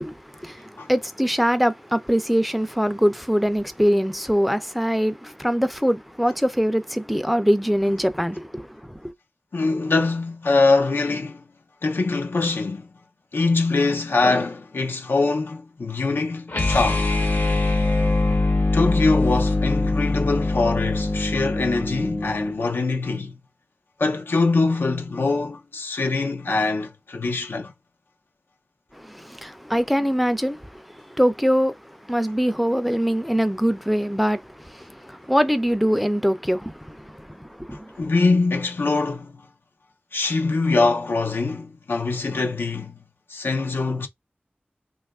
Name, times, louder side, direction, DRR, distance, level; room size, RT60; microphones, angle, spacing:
voice 1, 0.0-9.1 28.9-38.1, equal, ahead, 0.4 m, -23 dB
voice 2, 9.5-11.4 11.8-12.9 13.3-17.1 18.7-23.4 24.0-27.7 38.0-39.3 40.1-43.0 43.3-44.1, left 3 dB, 85° left, 0.5 m, -23 dB
sound 1, 16.5-22.6, left 2 dB, 65° left, 0.8 m, -22 dB
3.0 x 2.4 x 3.5 m
wide cardioid pair, 70°, 4 cm